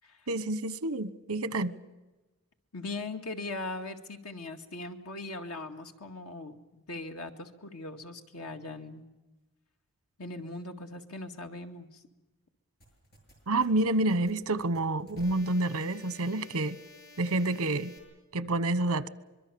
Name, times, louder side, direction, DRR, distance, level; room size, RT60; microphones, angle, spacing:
voice 1, 0.3-1.7 13.5-16.8 17.2-17.9 18.3-19.1, right 2 dB, 80° right, 16 dB, 1.1 m, -28 dB
voice 2, 2.7-9.0 10.2-12.0, left 2 dB, 90° left, 4 dB, 2.1 m, -40 dB
sound 1, 12.8-18.0, left 2 dB, 45° left, 7.4 m, -53 dB
24.5 x 23.0 x 7.0 m, 1.1 s
head